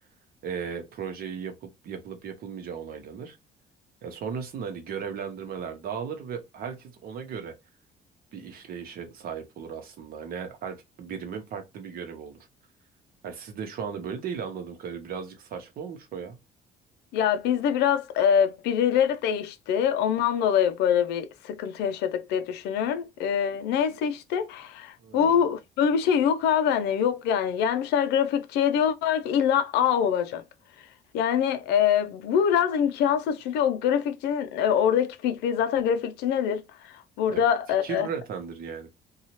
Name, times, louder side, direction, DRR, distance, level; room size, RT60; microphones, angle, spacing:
voice 1, 0.4-3.4 4.0-7.5 8.3-12.4 13.2-16.4 25.0-25.4 37.3-37.4 37.8-38.9, right 7 dB, 60° right, 0.9 m, -36 dB
voice 2, 17.1-30.4 30.8-30.9 31.1-38.1, left 8 dB, 85° left, 0.4 m, -24 dB
2.7 x 2.3 x 2.9 m
cardioid pair, 110°, 17 cm